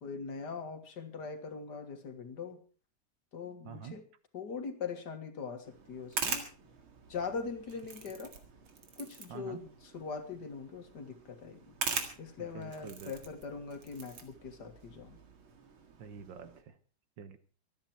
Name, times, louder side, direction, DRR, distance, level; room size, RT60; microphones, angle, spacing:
voice 1, 0.0-2.6 3.3-4.0 4.3-6.5 7.1-8.3 9.0-11.8 12.2-15.2, left 5 dB, 55° left, 7 dB, 2.1 m, -41 dB
voice 2, 3.7-4.0 9.3-9.7 12.4-13.1 16.0-16.8 17.2-17.4, right 7 dB, 65° right, 12 dB, 1.7 m, -47 dB
sound 1, 5.6-16.6, right 5 dB, 85° right, 2.8 m, -43 dB
24.5 x 9.4 x 4.4 m, 0.38 s
omnidirectional pair, 2.2 m